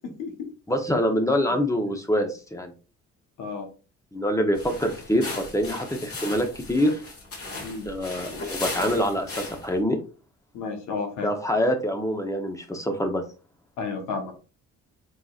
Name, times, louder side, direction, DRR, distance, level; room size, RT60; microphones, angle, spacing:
voice 1, 0.7-2.7 4.1-7.0 7.9-10.0 11.2-13.2, equal, 10° left, 4 dB, 1.0 m, -25 dB
sound 1, 4.5-9.8, left 2 dB, 50° left, 1.9 m, -36 dB
voice 2, 10.5-11.3 13.8-14.4, left 4 dB, 90° left, 3 dB, 1.4 m, -32 dB
4.6 x 4.1 x 2.5 m, 0.34 s
cardioid pair, 90°, 30 cm